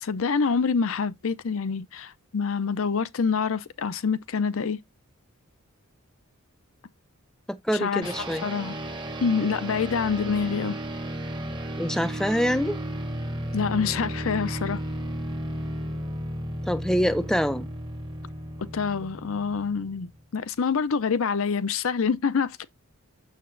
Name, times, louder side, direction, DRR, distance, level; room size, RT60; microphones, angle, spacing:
voice 1, 0.0-4.8 7.8-8.1 8.4-8.7 9.2-10.8 13.5-14.8 18.6-22.6, left 5 dB, 65° left, 0.5 m, -26 dB
voice 2, 7.5-8.4 11.8-12.8 16.7-17.7, equal, ahead, 0.4 m, -25 dB
sound 1, 8.0-20.2, right 1 dB, 20° right, 0.9 m, -34 dB
6.7 x 6.5 x 2.5 m
head